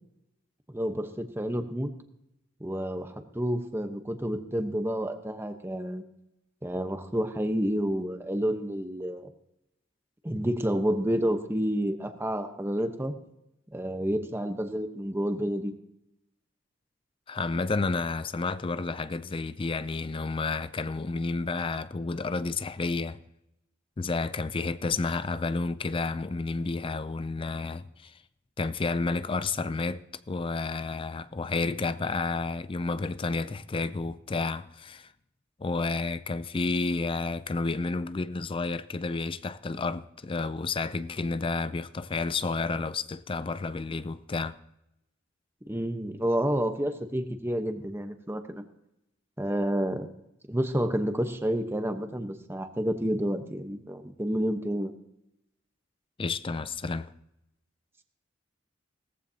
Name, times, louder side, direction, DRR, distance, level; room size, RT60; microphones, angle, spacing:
voice 1, 0.7-1.9 2.6-6.0 6.6-9.3 10.2-13.1 13.7-15.7 45.7-48.6 49.4-50.1 50.5-54.9, equal, 10° right, 1.0 m, -29 dB
voice 2, 17.3-23.2 24.0-28.2 28.6-35.1 35.6-44.6 56.2-57.1, left 3 dB, 25° left, 0.4 m, -31 dB
18.0 x 14.5 x 2.8 m
head